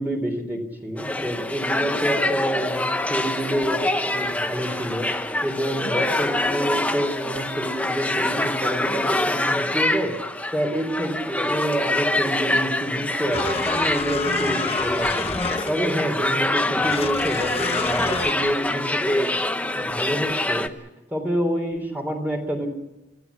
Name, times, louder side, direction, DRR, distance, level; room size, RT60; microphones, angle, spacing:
voice 1, 0.0-19.3 19.7-22.7, equal, 10° right, 2 dB, 3.4 m, -28 dB
sound 1, 1.0-20.7, left 1 dB, 10° left, 0.8 m, -25 dB
sound 2, 13.3-16.0 16.8-18.4, left 5 dB, 30° left, 1.0 m, -30 dB
27.0 x 15.5 x 8.4 m, 1.0 s
head